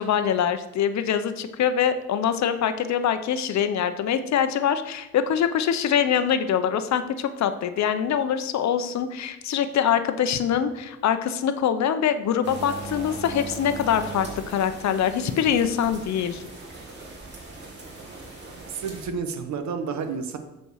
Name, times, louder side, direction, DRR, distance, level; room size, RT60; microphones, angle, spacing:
voice 1, 0.0-16.4, left 8 dB, 65° left, 10 dB, 0.8 m, -24 dB
sound 1, 12.4-19.1, right 2 dB, 35° right, 2.7 m, -39 dB
voice 2, 18.0-20.4, right 5 dB, 65° right, 7 dB, 1.2 m, -32 dB
8.0 x 4.5 x 6.4 m, 0.99 s
cardioid pair, 90°, 30 cm